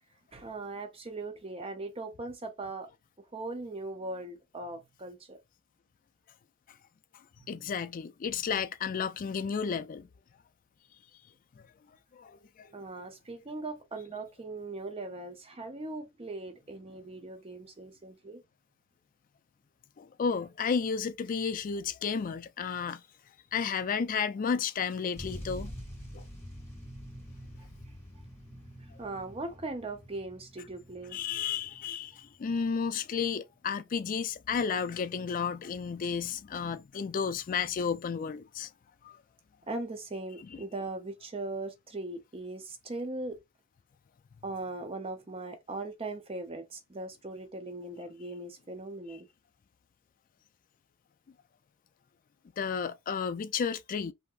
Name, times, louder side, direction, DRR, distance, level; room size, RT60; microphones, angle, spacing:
voice 1, 0.3-2.9 3.3-5.4 7.4-7.5 12.7-18.4 29.0-31.2 39.7-43.4 44.4-49.3, right 2 dB, 25° right, 0.6 m, -39 dB
voice 2, 7.5-10.1 11.6-11.7 12.1-12.7 20.0-23.0 23.5-25.7 26.1-26.2 31.1-38.7 39.0-39.2 52.6-54.1, left 6 dB, 40° left, 0.3 m, -32 dB
sound 1, 25.2-32.7 33.4-33.5, equal, 10° left, 1.2 m, -46 dB
3.3 x 2.7 x 2.4 m
head